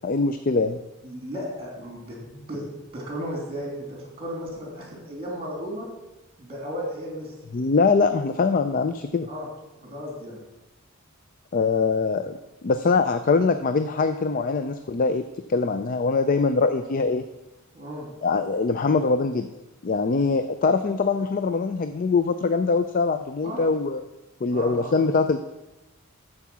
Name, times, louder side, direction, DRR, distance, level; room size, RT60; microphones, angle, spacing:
voice 1, 0.0-0.8 7.5-9.3 11.5-12.4 12.6-15.2 15.5-17.2 18.2-19.5 19.8-24.0 24.4-25.4, left 4 dB, 40° left, 10 dB, 0.4 m, -23 dB
voice 2, 1.0-2.6 2.9-5.9 6.4-7.3 9.3-9.5 9.8-10.4 17.7-18.1 23.4-23.6 24.5-25.1, equal, 25° right, -1 dB, 3.1 m, -35 dB
12.5 x 4.8 x 6.1 m, 1.0 s
head